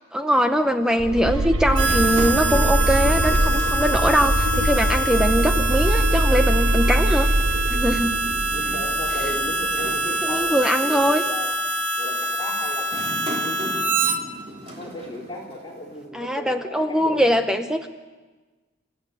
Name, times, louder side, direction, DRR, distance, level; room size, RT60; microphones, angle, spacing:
voice 1, 0.1-7.3 7.7-8.2 10.2-11.2 16.1-17.9, equal, 5° right, 7 dB, 0.7 m, -22 dB
sound 1, 1.0-9.9, equal, 75° right, 1.4 m, -23 dB
Harmonica, 1.7-14.2, right 2 dB, 55° right, 1.8 m, -25 dB
sound 2, 1.8-5.1 5.4-5.5 6.7-10.9 11.5-11.8 12.8-16.1, equal, 30° right, 3.5 m, -38 dB
voice 2, 8.5-11.5 12.0-13.7 14.8-17.5, left 1 dB, 20° left, -3 dB, 4.2 m, -36 dB
28.0 x 14.5 x 9.7 m, 1.3 s
head